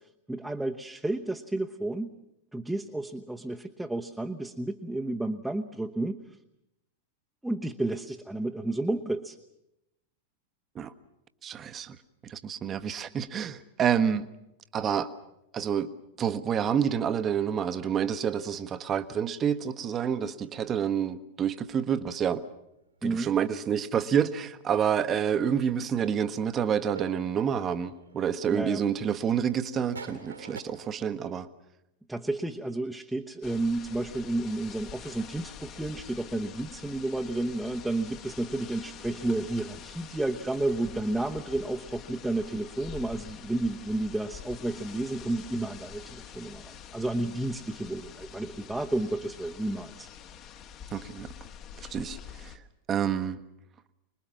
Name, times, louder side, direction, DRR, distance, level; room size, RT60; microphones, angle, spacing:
voice 1, 0.3-2.1 2.5-6.2 7.4-9.4 23.0-23.3 28.5-28.8 32.1-50.1, right 2 dB, 5° right, 2 dB, 1.0 m, -31 dB
voice 2, 11.4-12.0 12.2-14.3 14.7-15.1 15.5-15.9 16.2-22.4 23.0-31.5 50.9-51.3 51.8-52.6 52.9-53.4, right 8 dB, 25° right, 12 dB, 1.1 m, -28 dB
sound 1, 22.5-24.3 24.6-25.0 25.3-30.6, right 4 dB, 80° right, 2.6 m, -48 dB
sound 2, 33.4-52.6, left 8 dB, 35° left, 1.4 m, -46 dB
25.5 x 21.0 x 7.4 m, 0.85 s
figure-of-eight pair, 90°, 0 cm